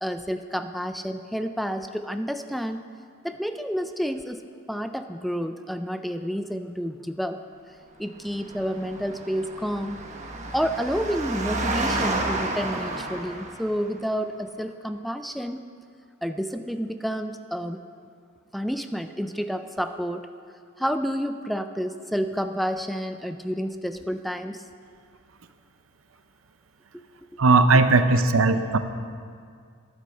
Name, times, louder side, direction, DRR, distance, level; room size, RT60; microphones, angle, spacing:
voice 1, 0.0-2.8 3.2-4.4 4.7-7.4 8.0-10.0 10.5-15.7 16.2-17.8 18.5-20.3 20.8-24.6 26.9-27.0 27.3-27.4, equal, ahead, 8 dB, 0.3 m, -29 dB
Engine, 8.3-13.9, right 2 dB, 35° right, 1.1 m, -31 dB
voice 2, 27.4-28.8, right 3 dB, 75° right, 10 dB, 0.7 m, -18 dB
11.5 x 9.5 x 6.5 m, 2.2 s
head